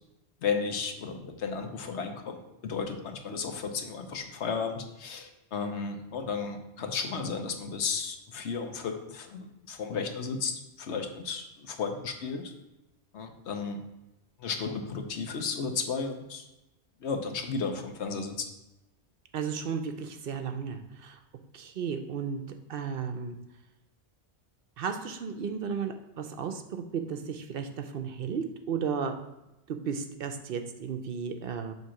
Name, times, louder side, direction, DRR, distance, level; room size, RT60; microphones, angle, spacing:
voice 1, 0.4-12.5 13.1-13.8 14.4-16.4 17.0-18.5, left 5 dB, 80° left, 5 dB, 1.1 m, -34 dB
voice 2, 19.3-21.2 21.5-23.4 24.8-29.2 29.7-31.7, right 6 dB, 60° right, 6 dB, 0.7 m, -34 dB
7.6 x 2.9 x 5.6 m, 0.95 s
omnidirectional pair, 1.1 m